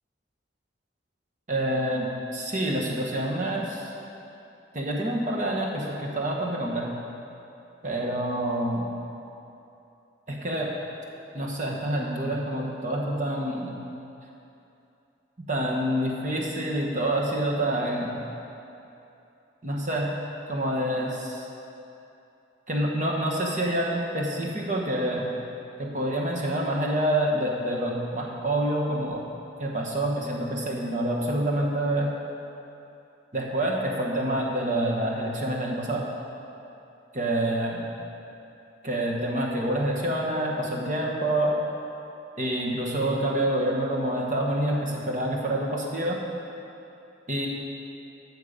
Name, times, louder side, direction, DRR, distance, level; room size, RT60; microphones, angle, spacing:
voice 1, 1.5-3.9 4.7-6.9 7.8-8.9 10.3-10.7 11.3-13.8 15.5-18.2 19.6-20.1 20.5-21.5 22.7-25.3 25.8-29.2 29.6-32.1 33.3-36.0 37.1-37.8 38.8-41.5 42.4-46.2 47.3-47.5, right 1 dB, 40° right, -2 dB, 1.4 m, -27 dB
13.0 x 6.6 x 5.2 m, 2.8 s
head